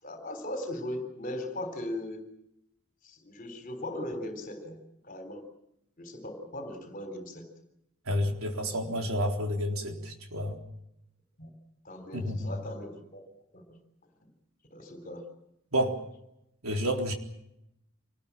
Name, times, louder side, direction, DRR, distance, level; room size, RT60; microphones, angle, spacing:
voice 1, 0.0-2.2 3.0-4.8 5.0-5.4 6.0-7.5 11.4-11.5 11.8-13.2 13.5-13.8 14.2-14.3 14.7-15.3, left 1 dB, 40° left, 6 dB, 3.8 m, -38 dB
voice 2, 8.1-10.6 12.1-12.5 15.7-16.0 16.6-17.1, equal, 80° right, 2 dB, 3.9 m, -30 dB
26.0 x 19.5 x 7.5 m, 0.81 s
head